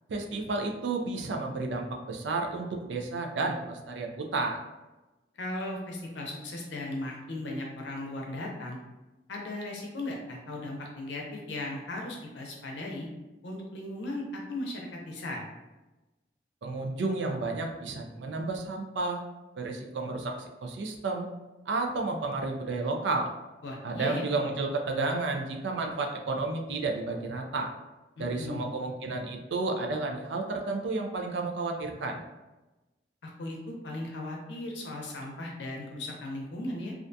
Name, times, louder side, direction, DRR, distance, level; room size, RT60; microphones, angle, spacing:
voice 1, 0.1-4.6 16.6-19.2 19.6-21.3 21.7-23.3 23.8-27.7 28.2-32.2, right 3 dB, 80° right, 3 dB, 0.4 m, -31 dB
voice 2, 5.4-8.8 9.3-13.1 13.4-15.4 23.6-24.3 28.2-28.7 33.2-36.9, left 1 dB, 85° left, 0 dB, 0.6 m, -37 dB
2.4 x 2.2 x 2.6 m, 1.1 s
head